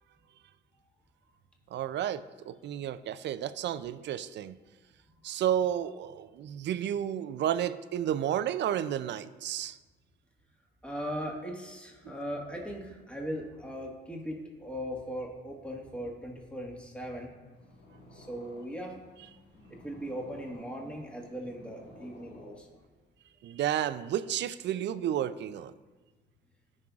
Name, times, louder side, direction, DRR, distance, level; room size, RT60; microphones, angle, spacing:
voice 1, 1.7-4.5 5.2-9.8 23.4-25.7, right 10 dB, 65° right, 14 dB, 0.4 m, -31 dB
voice 2, 10.8-17.4 18.1-19.0 19.7-22.7, equal, 5° left, -1 dB, 1.5 m, -39 dB
Purr, 17.4-23.1, left 1 dB, 60° left, 1.7 m, -54 dB
15.0 x 5.4 x 2.4 m, 1.3 s
cardioid pair, 90°, 20 cm